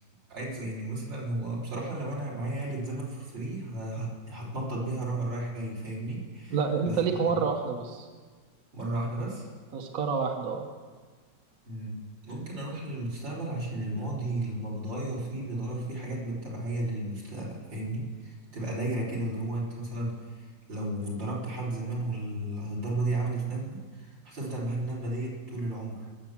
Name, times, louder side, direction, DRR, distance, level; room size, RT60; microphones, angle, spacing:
voice 1, 0.3-6.9 7.2-7.4 8.7-9.5 11.7-26.1, right 2 dB, 75° right, -5 dB, 4.3 m, -34 dB
voice 2, 6.5-8.1 9.7-10.6, right 5 dB, 55° right, 3 dB, 1.3 m, -28 dB
20.5 x 7.3 x 7.2 m, 1.5 s
omnidirectional pair, 2.0 m